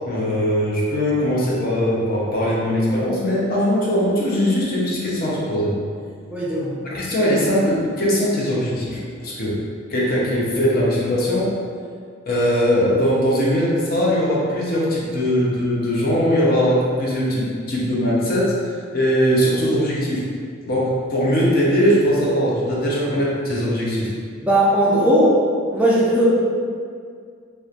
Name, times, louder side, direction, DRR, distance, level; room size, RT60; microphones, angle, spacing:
voice 1, 0.1-5.8 6.8-9.6 9.9-11.5 12.3-18.5 18.9-20.2 20.7-24.1, equal, 45° left, -5 dB, 0.6 m, -20 dB
voice 2, 6.3-6.7 24.4-25.3 25.7-26.3, right 1 dB, 5° right, -9 dB, 0.3 m, -17 dB
2.9 x 2.1 x 2.4 m, 2.2 s
head